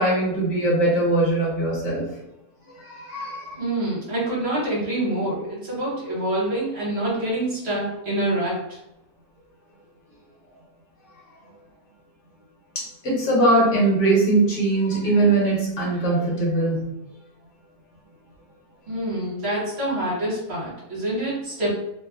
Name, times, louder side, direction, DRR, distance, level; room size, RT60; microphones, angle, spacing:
voice 1, 0.0-2.0 2.9-3.6 12.7-16.9, right 2 dB, 55° left, -4 dB, 1.2 m, -21 dB
voice 2, 3.5-8.8 18.9-21.8, right 1 dB, 45° right, -6 dB, 1.3 m, -26 dB
2.9 x 2.2 x 2.4 m, 0.87 s
omnidirectional pair, 1.6 m